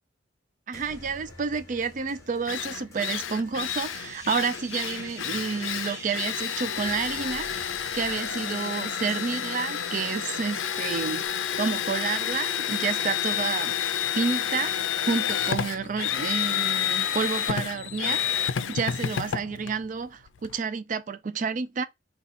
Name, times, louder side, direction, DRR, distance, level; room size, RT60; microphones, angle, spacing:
sound 1, 0.7-9.7, left 2 dB, 15° left, 1.3 m, -50 dB
voice 1, 0.7-7.6 7.9-11.2 11.6-13.8 14.1-14.7 15.0-21.8, right 5 dB, 40° right, 0.4 m, -30 dB
Drill, 2.0-2.1 2.5-20.6, left 9 dB, 90° left, 0.4 m, -30 dB
sound 2, 3.6-11.3, right 2 dB, 15° right, 1.1 m, -44 dB
4.2 x 2.4 x 4.0 m
head